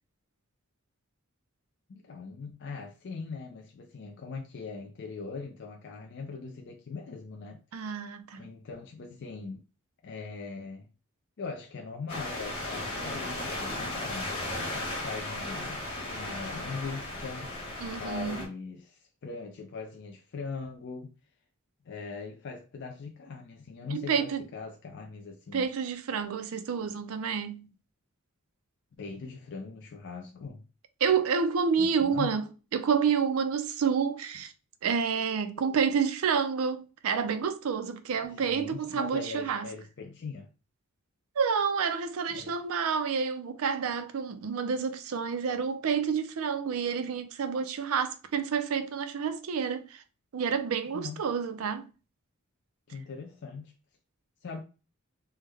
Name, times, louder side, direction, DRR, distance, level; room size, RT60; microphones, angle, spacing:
voice 1, 1.9-7.6 8.3-9.6 10.0-10.9 11.4-14.2 14.7-15.8 16.1-17.5 18.0-21.1 21.9-25.7 29.0-30.6 31.8-32.3 38.2-40.5 42.3-42.6 50.9-51.2 52.9-53.7 54.4-54.6, left 4 dB, 55° left, 0.4 m, -41 dB
voice 2, 7.7-8.4 17.8-18.4 23.9-24.4 25.5-27.7 31.0-32.4 32.7-34.5 34.8-39.7 41.4-50.0 50.3-51.9, right 6 dB, 80° right, 0.4 m, -29 dB
sound 1, 12.1-18.4, left 1 dB, 25° left, 1.2 m, -35 dB
3.3 x 2.1 x 3.3 m
head